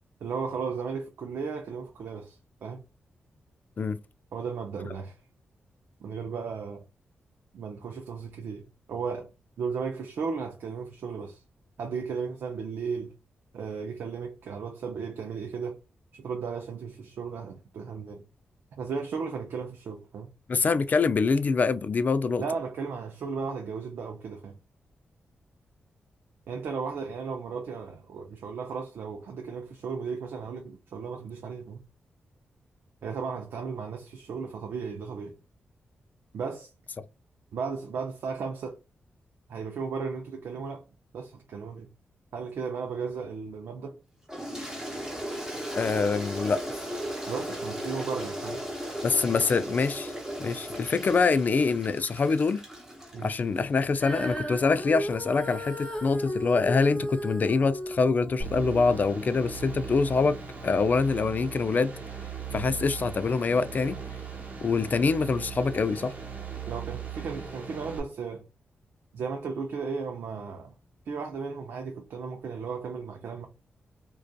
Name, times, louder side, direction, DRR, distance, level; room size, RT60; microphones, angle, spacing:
voice 1, 0.2-2.8 4.3-5.2 6.0-6.8 7.5-9.3 9.6-11.4 11.8-13.1 13.5-15.8 16.1-18.2 18.8-20.3 22.4-24.6 26.5-31.8 33.0-35.4 36.3-36.7 37.5-38.8 39.5-40.8 41.1-41.9 42.3-44.0 47.3-48.6 53.1-53.3 62.5-62.7 66.7-68.5 69.1-70.7 71.1-73.5, right 5 dB, 80° right, 0.4 m, -35 dB
voice 2, 20.5-22.4 45.7-46.6 49.0-50.1 50.4-52.6 53.2-61.9 62.5-64.0 64.6-66.1, left 4 dB, 45° left, 0.3 m, -25 dB
Toilet flush, 44.3-53.6, equal, 15° right, 0.9 m, -36 dB
Female singing, 54.0-60.3 61.0-61.1, equal, 25° left, 1.0 m, -36 dB
sound 1, 58.4-68.0, right 6 dB, 45° right, 0.9 m, -39 dB
2.5 x 2.3 x 2.3 m
cardioid pair, 80°, 4 cm